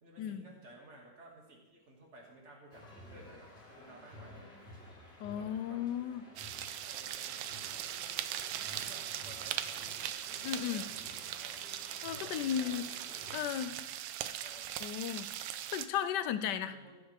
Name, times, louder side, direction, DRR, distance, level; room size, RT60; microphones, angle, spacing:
voice 1, 0.0-4.7 5.3-5.8 6.9-7.7 8.7-9.9 10.3-10.9 11.9-14.0 14.4-14.7 16.6-17.0, right 1 dB, 35° right, -2 dB, 2.3 m, -55 dB
sound 1, 2.7-13.3, left 1 dB, 30° left, 3.5 m, -54 dB
voice 2, 5.2-6.2 10.4-10.8 12.0-12.9 13.3-13.7 14.8-15.3 15.7-16.7, left 9 dB, 75° left, 12 dB, 1.0 m, -35 dB
sound 2, 6.4-15.9, right 11 dB, 85° right, 1.4 m, -40 dB
15.0 x 8.0 x 3.5 m, 1.0 s
omnidirectional pair, 2.2 m